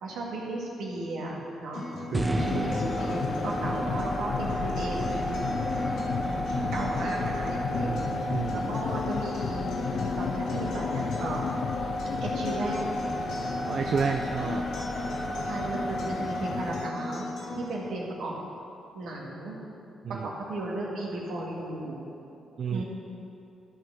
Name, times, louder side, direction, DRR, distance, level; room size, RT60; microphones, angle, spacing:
voice 1, 0.0-1.8 2.4-5.4 6.2-11.5 12.2-13.0 15.5-17.3 17.5-18.4 18.9-19.6 20.1-22.0 22.7-22.8, right 2 dB, 80° right, -3 dB, 2.0 m, -35 dB
Acoustic guitar, 1.7-17.7, left 2 dB, 85° left, 2.3 m, -39 dB
voice 2, 1.9-2.8 6.5-6.9 7.8-8.7 13.7-14.7 20.0-20.3 22.6-22.8, right 6 dB, 60° right, 5 dB, 0.5 m, -32 dB
sound 1, 2.1-18.3, right 1 dB, 15° right, 0.8 m, -34 dB
sound 2, 2.4-16.9, left 7 dB, 65° left, 0.3 m, -34 dB
13.0 x 4.7 x 6.2 m, 2.7 s
supercardioid pair, 65°, 0 cm